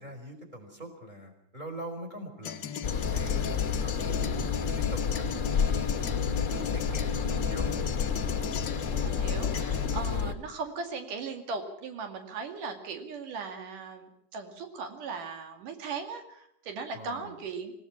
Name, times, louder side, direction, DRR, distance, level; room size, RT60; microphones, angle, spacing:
voice 1, 0.0-2.7 3.1-6.0 6.5-7.9 16.9-17.3, equal, 15° right, 5 dB, 4.6 m, -43 dB
sound 1, 2.4-10.2, left 8 dB, 70° left, 1.1 m, -37 dB
sound 2, 2.8-10.3, left 6 dB, 35° left, 1.3 m, -30 dB
voice 2, 7.2-8.0 9.0-17.7, right 5 dB, 85° right, 5 dB, 3.8 m, -38 dB
26.5 x 17.5 x 5.9 m, 0.74 s
omnidirectional pair, 3.6 m